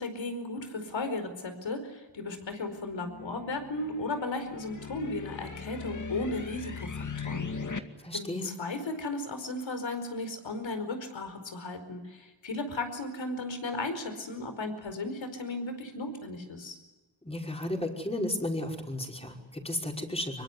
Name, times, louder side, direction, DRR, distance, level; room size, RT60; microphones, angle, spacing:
voice 1, 0.0-7.5 8.1-16.8, left 2 dB, 80° left, 8 dB, 5.0 m, -35 dB
sound 1, 2.8-7.8, left 5 dB, 40° left, 2.2 m, -39 dB
voice 2, 8.0-8.6 17.2-20.4, left 1 dB, 15° left, 1 dB, 5.4 m, -33 dB
25.0 x 23.5 x 9.6 m, 1.2 s
wide cardioid pair, 95°, 45 cm